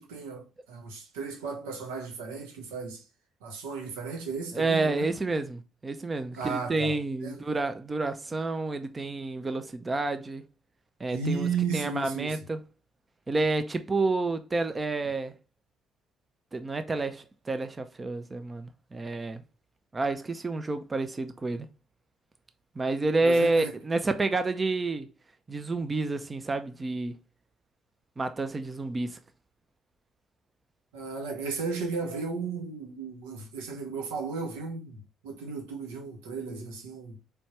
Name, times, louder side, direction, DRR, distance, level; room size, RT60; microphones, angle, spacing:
voice 1, 0.0-3.0 3.4-5.1 6.3-7.4 11.1-12.4 23.2-23.8 30.9-35.0 35.2-37.2, right 5 dB, 80° right, 1.0 m, -34 dB
voice 2, 4.5-10.4 11.0-11.5 11.7-12.6 13.3-15.3 16.5-19.4 19.9-21.7 22.8-25.1 25.5-27.2 28.2-29.2, right 3 dB, 30° right, 0.6 m, -29 dB
4.4 x 3.4 x 3.1 m
hypercardioid pair, 50°, 0 cm